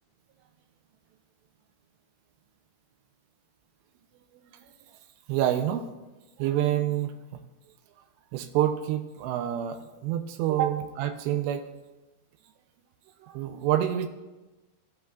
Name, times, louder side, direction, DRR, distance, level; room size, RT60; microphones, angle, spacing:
voice 1, 5.3-5.9 6.4-7.1 8.3-9.8 10.0-11.6 13.3-14.1, right 12 dB, 85° right, 6 dB, 2.7 m, -27 dB
16.0 x 7.9 x 2.3 m, 1.1 s
omnidirectional pair, 4.8 m